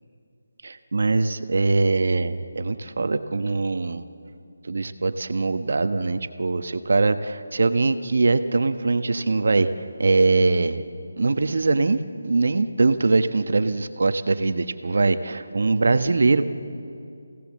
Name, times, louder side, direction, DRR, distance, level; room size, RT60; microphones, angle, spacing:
voice 1, 0.6-4.0 4.6-9.7 10.0-10.8 11.2-12.0 12.2-16.4, right 3 dB, 60° right, 9 dB, 1.2 m, -22 dB
27.5 x 17.0 x 7.4 m, 2.4 s
figure-of-eight pair, 170°, 0 cm